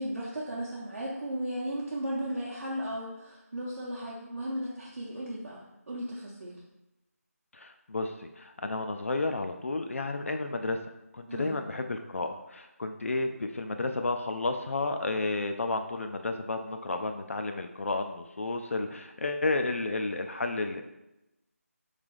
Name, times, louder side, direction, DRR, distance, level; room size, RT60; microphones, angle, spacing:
voice 1, 0.0-6.6 11.3-11.6, equal, 55° right, -6 dB, 0.8 m, -35 dB
voice 2, 7.5-10.8 11.1-20.8, left 3 dB, 55° left, 6 dB, 0.4 m, -32 dB
3.2 x 3.0 x 3.7 m, 0.92 s
figure-of-eight pair, 165°, 8 cm